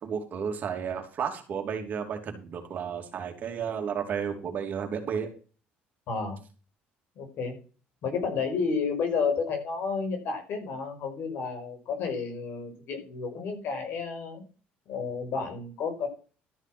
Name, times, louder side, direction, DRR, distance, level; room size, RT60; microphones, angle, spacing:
voice 1, 0.0-5.3, right 7 dB, 45° right, 4 dB, 2.9 m, -32 dB
voice 2, 6.1-6.4 7.2-7.6 8.0-14.4 14.9-16.1, left 5 dB, 65° left, 5 dB, 5.2 m, -31 dB
13.0 x 6.2 x 6.2 m, 0.36 s
cardioid pair, 120°, 4 cm